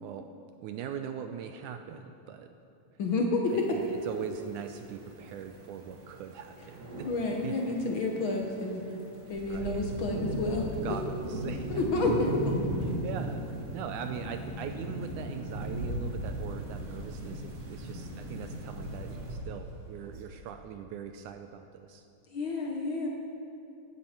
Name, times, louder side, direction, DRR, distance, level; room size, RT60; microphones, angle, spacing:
voice 1, 0.0-0.3 0.6-2.5 3.7-7.1 7.4-7.6 9.5-9.8 10.8-11.8 13.0-13.5 13.7-22.1, right 8 dB, 80° right, 7 dB, 1.8 m, -41 dB
voice 2, 3.0-3.8 7.0-8.9 9.3-10.7 11.7-12.6 22.3-23.1, left 2 dB, 70° left, 0 dB, 1.1 m, -29 dB
sound 1, 3.5-19.3, right 1 dB, 35° right, 1.4 m, -38 dB
Rain, 9.3-12.8 13.4-13.5 13.9-20.5, right 1 dB, 55° right, 1.7 m, -42 dB
16.5 x 13.0 x 4.5 m, 2.6 s
omnidirectional pair, 4.0 m